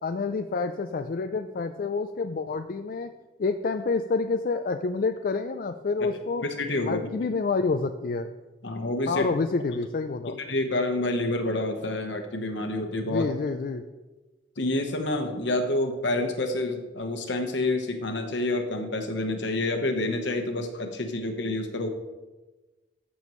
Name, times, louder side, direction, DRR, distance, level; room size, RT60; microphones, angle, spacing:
voice 1, 0.0-3.1 3.4-6.4 6.9-8.3 9.1-10.4 13.0-13.8, left 4 dB, 50° left, 7 dB, 0.4 m, -28 dB
voice 2, 6.4-7.1 8.6-9.3 10.4-13.3 14.6-21.9, left 2 dB, 70° left, 5 dB, 1.2 m, -28 dB
13.5 x 7.0 x 3.1 m, 1.2 s
head